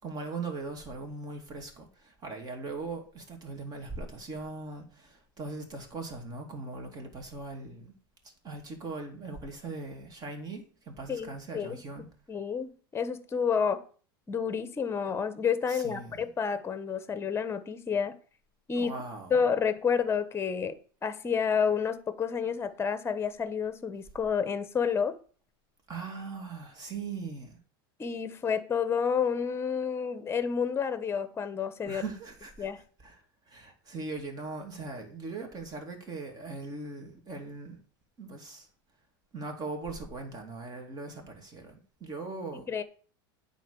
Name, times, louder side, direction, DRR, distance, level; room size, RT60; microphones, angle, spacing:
voice 1, 0.0-7.9 8.4-12.1 15.7-16.3 18.7-19.4 25.9-27.6 31.9-32.7 33.0-33.2 33.5-37.8 38.2-38.7 39.3-42.7, right 3 dB, 30° right, 2.8 m, -40 dB
voice 2, 11.1-11.8 12.3-13.8 14.3-18.2 18.7-18.9 19.3-20.7 21.0-25.2 28.0-32.0 32.6-32.8 42.7-42.8, left 6 dB, 20° left, 1.1 m, -29 dB
9.2 x 4.1 x 7.1 m
hypercardioid pair, 110°, 12 cm